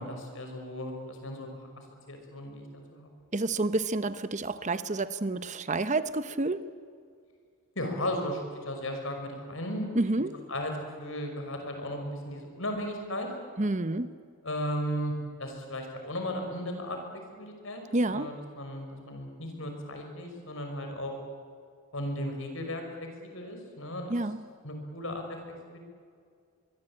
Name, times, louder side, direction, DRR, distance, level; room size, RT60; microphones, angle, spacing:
voice 1, 0.0-1.5 1.8-2.7 2.9-3.1 7.8-9.9 10.5-10.7 11.0-13.3 14.4-15.1 15.4-17.8 18.1-21.1 21.9-24.2 24.6-25.4 25.7-25.8, left 1 dB, 60° left, 4 dB, 5.7 m, -35 dB
voice 2, 3.3-6.6 9.9-10.3 13.6-14.1 17.9-18.3 24.1-24.4, right 2 dB, 35° right, 13 dB, 0.8 m, -29 dB
24.0 x 23.0 x 8.8 m, 2.2 s
head